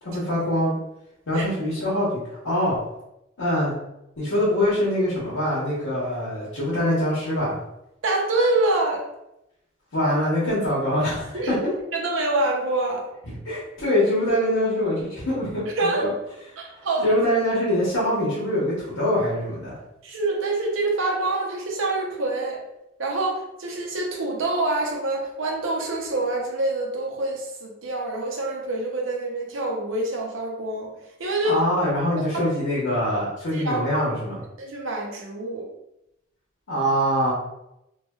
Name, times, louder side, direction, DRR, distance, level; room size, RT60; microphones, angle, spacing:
voice 1, 0.0-0.7 1.3-2.8 3.4-3.7 4.2-7.6 9.9-11.6 13.2-16.1 16.8-19.8 31.4-34.4 36.7-37.3, equal, 85° left, -7 dB, 0.9 m, -24 dB
voice 2, 8.0-9.0 11.3-11.5 11.9-13.1 15.8-16.1 16.6-17.2 20.0-22.6 23.0-30.9 31.2-31.6 32.3-32.4 33.5-34.0 34.6-35.7, right 2 dB, 70° right, 0 dB, 0.6 m, -26 dB
3.1 x 2.2 x 2.3 m, 0.86 s
head